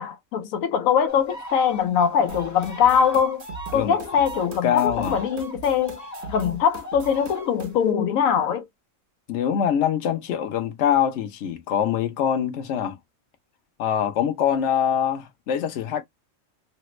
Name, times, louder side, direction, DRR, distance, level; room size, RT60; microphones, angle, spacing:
voice 1, 0.0-3.4 3.7-6.0 6.3-8.6, left 7 dB, 85° left, 1.0 m, -22 dB
sound 1, 1.1-7.8, right 1 dB, 20° left, 0.5 m, -39 dB
sound 2, 2.3-7.7, right 3 dB, 60° right, 0.9 m, -40 dB
voice 2, 4.6-5.2 9.3-13.0 13.8-16.0, left 9 dB, 65° left, 1.0 m, -24 dB
3.3 x 2.0 x 3.0 m
omnidirectional pair, 1.4 m